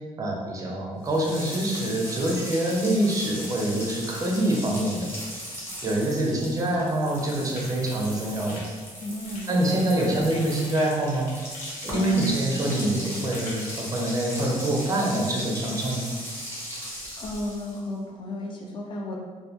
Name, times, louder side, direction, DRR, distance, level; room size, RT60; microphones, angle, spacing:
voice 1, 0.2-5.1 5.8-8.6 9.5-11.3 11.8-16.1, right 1 dB, 25° right, -2 dB, 0.4 m, -25 dB
sound 1, 1.0-17.9, equal, 15° left, 0.7 m, -38 dB
sound 2, 7.5-13.6, left 2 dB, 70° left, 0.8 m, -44 dB
voice 2, 9.0-9.6 10.0-10.1 11.9-12.3 17.2-19.2, left 1 dB, 35° left, -1 dB, 0.3 m, -33 dB
2.2 x 2.2 x 2.7 m, 1.5 s
cardioid pair, 150°, 14 cm